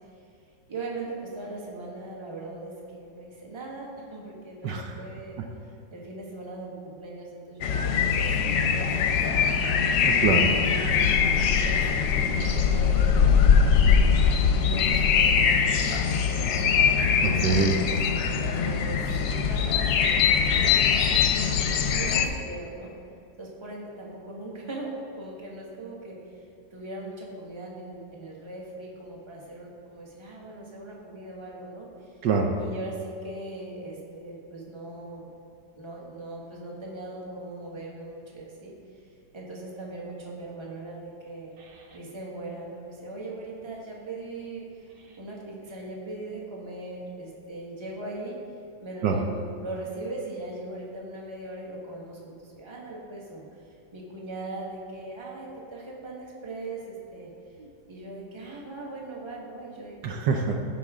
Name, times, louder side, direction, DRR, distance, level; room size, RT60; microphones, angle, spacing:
voice 1, 0.7-5.4 5.9-9.8 10.5-13.5 14.6-16.6 17.2-21.4 21.9-22.9 23.4-26.2 26.7-32.1 32.6-35.3 35.8-38.7 39.3-41.5 41.9-44.9 45.2-48.4 48.8-53.4 53.9-57.3 57.9-60.2, right 2 dB, 15° right, -3 dB, 1.3 m, -39 dB
sound 1, 7.6-22.3, left 6 dB, 65° left, 1.1 m, -22 dB
voice 2, 10.0-10.5 17.2-17.8 32.2-32.5 49.0-49.2 57.6-57.7 60.0-60.6, right 5 dB, 70° right, 2 dB, 1.3 m, -24 dB
15.0 x 5.6 x 3.6 m, 2.6 s
omnidirectional pair, 2.0 m